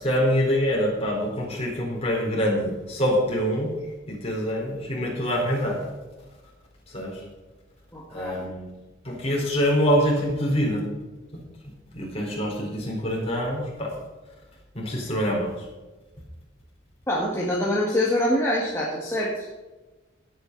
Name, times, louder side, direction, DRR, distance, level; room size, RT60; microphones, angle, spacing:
voice 1, 0.0-3.7 4.1-5.8 6.9-7.2 8.1-8.7 9.0-10.8 11.3-11.4 11.9-13.9 14.7-15.5, equal, 30° left, -2 dB, 4.1 m, -25 dB
voice 2, 7.9-8.5 17.1-19.5, left 1 dB, 15° left, -5 dB, 1.9 m, -25 dB
17.0 x 8.7 x 4.0 m, 1.2 s
head